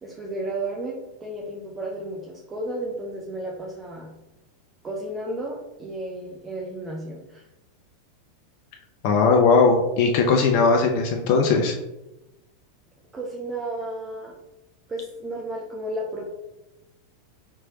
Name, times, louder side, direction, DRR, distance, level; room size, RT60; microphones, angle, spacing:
voice 1, 0.0-4.1 4.8-7.5 13.1-14.3 14.9-16.3, right 1 dB, 20° right, -2 dB, 0.7 m, -33 dB
voice 2, 9.0-11.8, left 4 dB, 55° left, 2 dB, 0.5 m, -19 dB
4.6 x 3.0 x 2.8 m, 0.96 s
hypercardioid pair, 90°, 0 cm